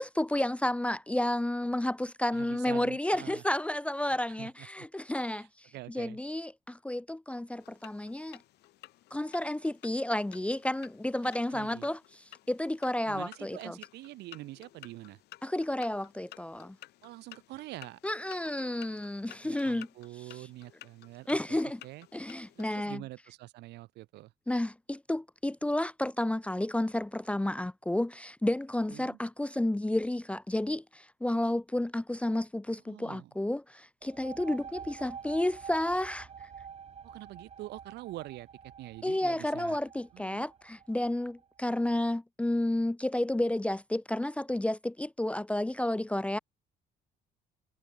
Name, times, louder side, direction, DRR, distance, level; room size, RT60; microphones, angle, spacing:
voice 1, 0.0-8.4 9.1-12.0 12.5-13.8 15.4-16.8 18.0-19.9 21.3-21.8 22.1-23.0 24.5-36.3 39.0-46.4, left 1 dB, 5° left, 0.7 m, -31 dB
voice 2, 2.3-3.4 4.4-4.9 5.3-5.5 5.7-6.2 11.1-11.9 13.0-15.2 17.0-18.0 19.4-22.1 22.5-24.3 28.9-29.2 32.9-33.3 37.0-39.8 40.1-40.5, right 18 dB, 85° right, 6.5 m, -45 dB
sound 1, 7.6-22.6, left 16 dB, 80° left, 6.0 m, -55 dB
sound 2, 34.0-41.4, right 7 dB, 40° right, 3.3 m, -48 dB
cardioid pair, 110°, 17 cm